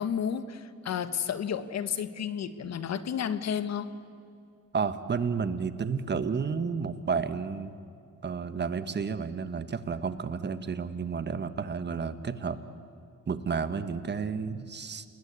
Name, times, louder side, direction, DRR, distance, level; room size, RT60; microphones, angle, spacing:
voice 1, 0.0-3.9, left 8 dB, 60° left, 12 dB, 1.5 m, -32 dB
voice 2, 4.7-7.8 8.2-12.6 13.3-15.0, right 5 dB, 35° right, 11 dB, 1.5 m, -31 dB
29.0 x 20.5 x 8.4 m, 2.4 s
cardioid pair, 90°, 30 cm